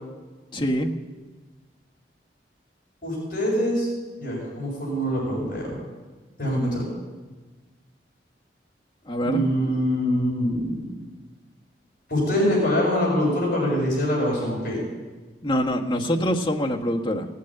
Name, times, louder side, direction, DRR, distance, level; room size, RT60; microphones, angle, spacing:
voice 1, 0.5-0.9 9.1-9.4 15.4-17.3, equal, 25° left, 0 dB, 1.3 m, -24 dB
voice 2, 3.0-3.9 4.2-5.7 6.4-6.9 9.2-10.9 12.1-14.8, equal, 50° left, -3 dB, 6.3 m, -24 dB
18.0 x 8.5 x 8.8 m, 1.3 s
head